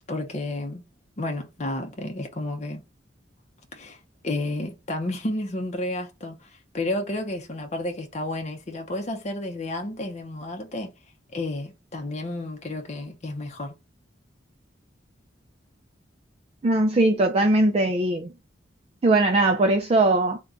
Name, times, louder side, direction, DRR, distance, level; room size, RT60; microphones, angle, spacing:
voice 1, 0.1-0.8 1.2-2.8 3.7-10.9 11.3-13.7, left 1 dB, 35° left, 0.6 m, -31 dB
voice 2, 16.6-18.3 19.0-20.4, right 2 dB, 35° right, 0.4 m, -20 dB
3.6 x 2.2 x 3.9 m
head